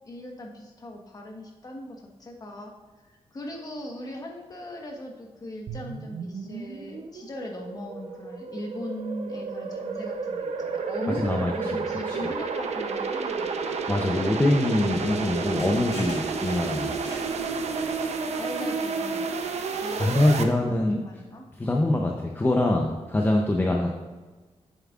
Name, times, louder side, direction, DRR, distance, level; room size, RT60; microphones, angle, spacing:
voice 1, 0.0-2.7 3.0-13.8 18.3-19.4 19.7-21.4, left 1 dB, 35° left, 1 dB, 1.2 m, -39 dB
sound 1, 5.7-20.4, right 5 dB, 75° right, 0.6 m, -31 dB
voice 2, 11.2-11.8 13.9-17.0 20.0-21.0 21.6-23.9, left 1 dB, 20° left, 0 dB, 0.6 m, -24 dB
sound 2, 14.9-18.3, left 1 dB, 65° left, 2.3 m, -45 dB
9.1 x 7.3 x 2.4 m, 1.3 s
wide cardioid pair, 145°, 11 cm